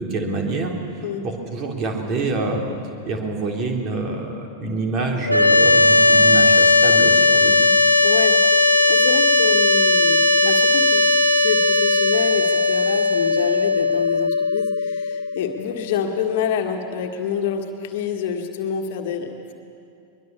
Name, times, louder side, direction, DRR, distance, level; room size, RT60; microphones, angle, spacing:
voice 1, 0.0-2.7 3.0-7.7, right 3 dB, 35° right, 1 dB, 3.6 m, -26 dB
sound 1, 5.3-16.4, left 2 dB, 90° left, 1.1 m, -17 dB
voice 2, 8.0-19.3, left 7 dB, 50° left, 4 dB, 1.9 m, -27 dB
23.0 x 22.0 x 7.1 m, 2.5 s
figure-of-eight pair, 90°, 0 cm